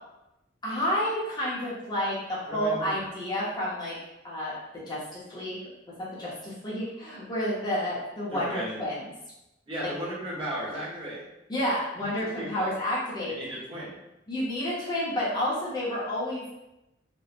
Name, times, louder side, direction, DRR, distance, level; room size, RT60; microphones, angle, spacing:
voice 1, 0.6-4.0 4.2-4.6 4.9-5.6 6.1-9.0 11.5-13.5 14.3-16.5, equal, 20° left, -8 dB, 0.7 m, -30 dB
voice 2, 2.5-3.1 8.3-8.8 9.7-11.2 12.0-12.7 13.3-14.0, right 1 dB, 30° right, -8 dB, 0.9 m, -36 dB
3.0 x 2.0 x 2.4 m, 0.92 s
head